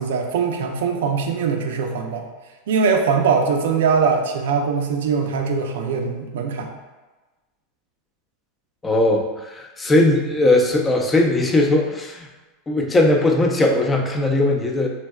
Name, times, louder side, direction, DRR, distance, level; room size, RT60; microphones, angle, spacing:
voice 1, 0.0-2.3 2.7-6.7, right 5 dB, 80° right, 4 dB, 0.4 m, -21 dB
voice 2, 8.8-12.3 12.7-14.9, left 2 dB, 20° left, 2 dB, 0.4 m, -19 dB
3.2 x 2.7 x 2.3 m, 1.2 s
hypercardioid pair, 110°, 0 cm